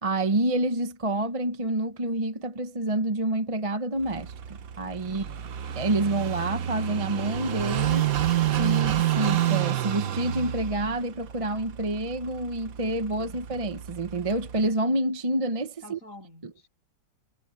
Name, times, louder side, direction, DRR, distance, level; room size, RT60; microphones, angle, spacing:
voice 1, 0.0-4.3 4.8-5.2 5.8-8.1 8.6-16.0, right 2 dB, 25° right, 0.8 m, -28 dB
Car passing by / Idling, 4.0-14.7, right 12 dB, 55° right, 1.3 m, -29 dB
voice 2, 5.1-5.6 15.8-16.7, left 1 dB, 50° left, 8.6 m, -49 dB
omnidirectional pair, 1.9 m